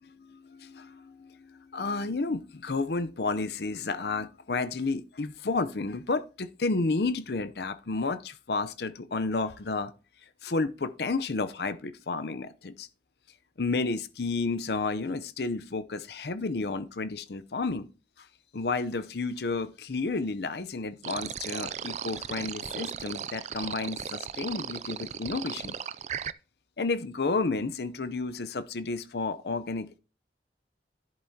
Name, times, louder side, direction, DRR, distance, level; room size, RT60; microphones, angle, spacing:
voice 1, 0.2-9.9 10.4-12.9 13.6-17.9 18.2-18.3 18.5-25.8 26.8-30.0, left 3 dB, 65° left, 0.7 m, -31 dB
sound 1, 21.0-26.3, right 8 dB, 40° right, 0.3 m, -37 dB
11.0 x 7.7 x 2.8 m
head